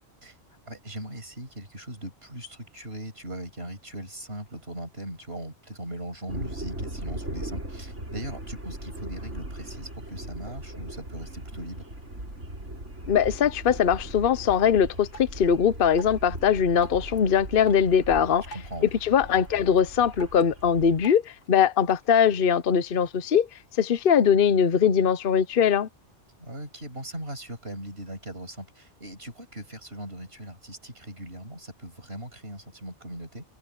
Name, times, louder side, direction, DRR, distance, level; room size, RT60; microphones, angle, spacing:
voice 1, 0.7-11.9 18.5-18.9 26.4-33.4, right 1 dB, 60° right, 6.8 m, -39 dB
sound 1, 6.3-21.1, right 1 dB, 90° right, 6.5 m, -39 dB
voice 2, 13.1-18.4 19.0-23.5 23.8-25.9, left 7 dB, 55° left, 1.0 m, -21 dB
Drip, 15.1-22.1, right 3 dB, 80° left, 6.2 m, -50 dB
omnidirectional pair, 1.2 m